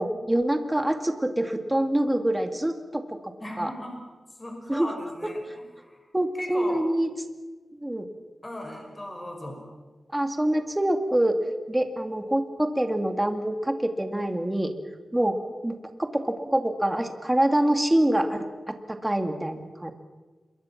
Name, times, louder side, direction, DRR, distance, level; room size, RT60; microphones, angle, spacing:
voice 1, 0.0-3.2 3.6-3.7 4.7-4.9 5.2-5.3 6.1-7.1 7.7-8.1 10.1-11.4 11.7-14.7 15.1-15.4 15.6-19.9, right 1 dB, 10° right, 6 dB, 2.2 m, -25 dB
voice 2, 3.4-4.0 4.4-6.0 6.4-6.8 8.4-9.6, left 1 dB, 20° left, 2 dB, 5.7 m, -38 dB
27.0 x 22.5 x 6.0 m, 1.3 s
wide cardioid pair, 105°, 0 cm